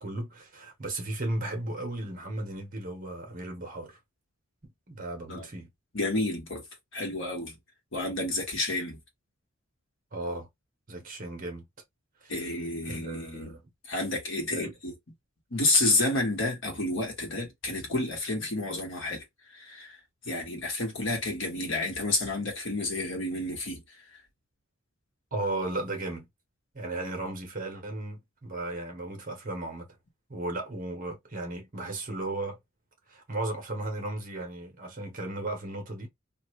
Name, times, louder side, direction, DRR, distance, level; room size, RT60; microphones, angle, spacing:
voice 1, 0.0-4.0 4.9-5.7 10.1-10.5 10.9-11.7 12.2-12.3 12.9-13.6 14.5-14.7 25.3-26.3 26.7-29.9 30.3-32.6 33.1-36.1, right 2 dB, 40° right, 1.2 m, -35 dB
voice 2, 5.9-6.6 6.9-7.6 7.9-9.0 12.3-13.6 13.8-14.9 15.5-19.2 19.5-23.8 24.1-24.2, left 2 dB, 65° left, 1.3 m, -30 dB
2.7 x 2.5 x 3.1 m
head